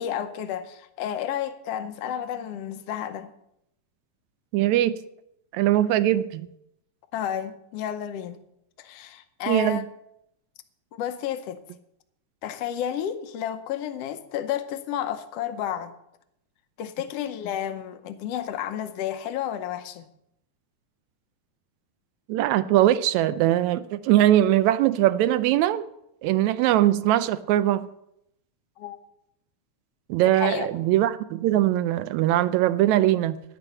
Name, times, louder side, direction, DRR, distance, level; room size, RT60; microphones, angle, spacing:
voice 1, 0.0-3.3 7.1-8.4 8.8-9.8 10.9-11.6 12.4-15.9 16.8-20.1 28.8-29.0 30.4-30.7, left 10 dB, 70° left, 10 dB, 1.6 m, -31 dB
voice 2, 4.5-5.0 5.5-6.5 9.5-9.9 22.3-25.8 26.2-27.9 30.1-33.4, right 13 dB, 80° right, 14 dB, 1.8 m, -21 dB
11.0 x 9.0 x 6.8 m, 0.79 s
omnidirectional pair, 3.5 m